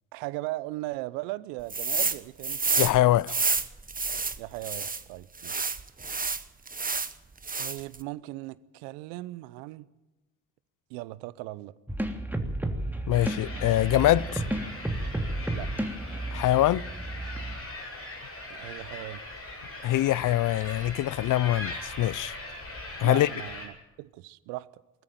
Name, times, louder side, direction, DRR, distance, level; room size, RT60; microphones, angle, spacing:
voice 1, 0.1-2.6 4.4-5.7 7.6-9.9 10.9-11.7 15.5-15.7 18.5-19.2 23.0-24.7, right 19 dB, 80° right, 0.8 m, -38 dB
sound 1, 1.7-2.2 2.4-5.0 5.4-7.1 7.4-8.0, right 4 dB, 25° right, 1.3 m, -29 dB
voice 2, 2.8-3.4 13.1-14.4 16.3-16.8 19.8-22.4 23.0-23.3, left 14 dB, 60° left, 0.6 m, -24 dB
sound 2, 11.9-17.5, right 1 dB, 5° right, 3.0 m, -32 dB
sound 3, 13.1-23.7, left 2 dB, 40° left, 7.4 m, -40 dB
20.0 x 13.5 x 9.4 m
hypercardioid pair, 40°, 35 cm